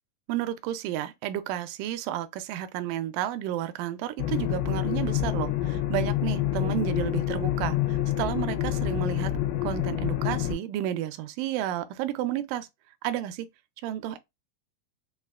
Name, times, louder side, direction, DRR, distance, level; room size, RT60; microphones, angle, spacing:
voice 1, 0.3-9.3 9.6-12.7 13.0-13.5 13.8-14.2, right 12 dB, 80° right, 2.0 m, -31 dB
sound 1, 4.2-10.5, left 12 dB, 90° left, 2.6 m, -27 dB
5.6 x 2.3 x 2.3 m
omnidirectional pair, 4.2 m